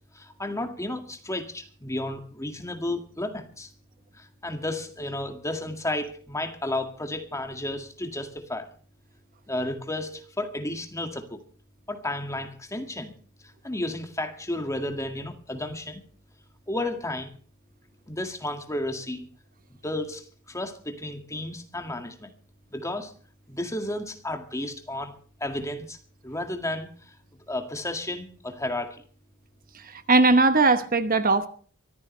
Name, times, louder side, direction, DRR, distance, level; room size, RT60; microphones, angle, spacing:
voice 1, 0.1-3.7 4.1-8.7 9.5-11.4 11.9-13.1 13.6-16.0 16.7-17.4 18.1-19.3 19.8-22.3 22.7-23.1 23.5-26.0 26.2-27.2 27.5-29.0, left 1 dB, 15° left, 6 dB, 1.9 m, -32 dB
voice 2, 29.9-31.5, right 3 dB, 40° right, 10 dB, 1.0 m, -19 dB
23.5 x 14.5 x 3.2 m, 0.43 s
head